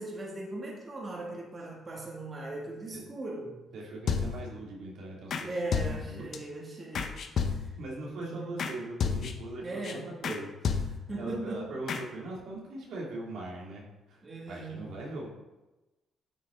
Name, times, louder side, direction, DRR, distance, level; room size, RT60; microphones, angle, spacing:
voice 1, 0.0-3.6 5.5-7.2 7.5-7.7 8.1-8.5 9.6-10.1 11.1-11.7 14.2-14.8, right 2 dB, 30° right, -2 dB, 2.2 m, -39 dB
voice 2, 3.7-6.3 7.8-15.3, right 2 dB, 75° right, -3 dB, 2.3 m, -41 dB
sound 1, 4.1-4.6 5.3-5.4 5.7-6.4 6.9-7.9 8.6-8.7 9.0-9.5 9.8-9.9 10.2-10.4 10.6-11.2 11.9-12.0, left 6 dB, 60° left, 0.9 m, -31 dB
9.0 x 6.3 x 3.7 m, 1.1 s
cardioid pair, 90°, 0 cm